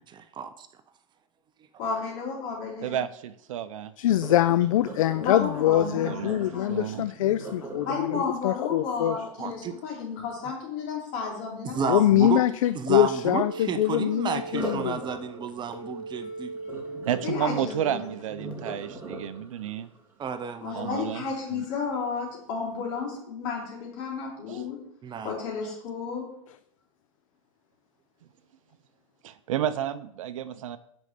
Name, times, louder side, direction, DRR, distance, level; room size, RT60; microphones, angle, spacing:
voice 1, 0.1-0.5 9.4-9.7 11.6-12.4 12.7-16.5 20.2-21.0 25.0-25.3, right 6 dB, 25° right, 10 dB, 0.7 m, -31 dB
voice 2, 1.8-3.0 5.2-6.8 7.8-12.4 17.2-18.0 20.6-24.8 25.2-26.3, left 5 dB, 50° left, -1 dB, 3.6 m, -33 dB
voice 3, 2.8-3.9 5.7-7.0 17.1-19.9 20.7-21.2 21.5-21.6 24.5-24.6 29.2-30.8, right 10 dB, 70° right, 13 dB, 0.6 m, -31 dB
voice 4, 4.0-9.2 11.8-15.0, left 12 dB, 75° left, 14 dB, 0.4 m, -24 dB
Sink (filling or washing), 4.1-10.0 14.4-21.4 22.0-22.3 22.8-22.9, right 2 dB, 10° right, 2.0 m, -41 dB
sound 1, 13.0-18.5, right 3 dB, 5° left, 1.5 m, -39 dB
6.3 x 5.3 x 6.6 m, 0.72 s
hypercardioid pair, 105°, 17 cm